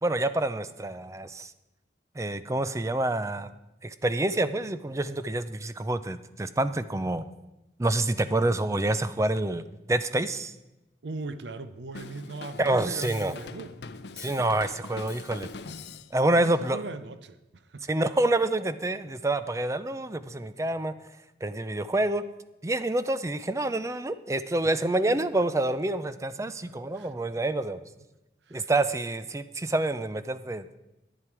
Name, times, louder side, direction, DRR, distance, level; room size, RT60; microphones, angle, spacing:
voice 1, 0.0-1.5 2.2-3.5 3.8-7.3 7.8-9.6 9.9-10.5 12.6-13.3 14.2-15.5 16.1-16.8 17.9-20.9 21.4-22.2 22.6-27.8 28.5-30.8, right 2 dB, 15° right, 13 dB, 0.4 m, -27 dB
voice 2, 11.0-13.8 16.2-17.9 25.3-25.4 26.4-27.1 28.5-28.7, right 3 dB, 80° right, 13 dB, 0.6 m, -40 dB
Drum kit, 11.9-16.1, left 4 dB, 75° left, 0.6 m, -42 dB
10.5 x 9.8 x 4.8 m, 0.97 s
head